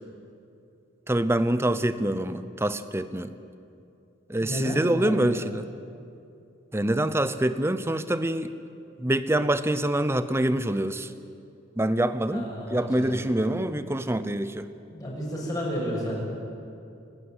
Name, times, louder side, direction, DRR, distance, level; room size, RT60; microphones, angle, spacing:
voice 1, 1.1-3.3 4.3-5.6 6.7-8.5 9.0-11.1 11.8-12.5 12.7-14.7, right 1 dB, 15° right, 12 dB, 0.7 m, -25 dB
voice 2, 4.4-5.3 12.3-13.2 14.9-16.2, equal, 20° left, -4 dB, 6.8 m, -32 dB
27.5 x 12.0 x 9.5 m, 2.6 s
head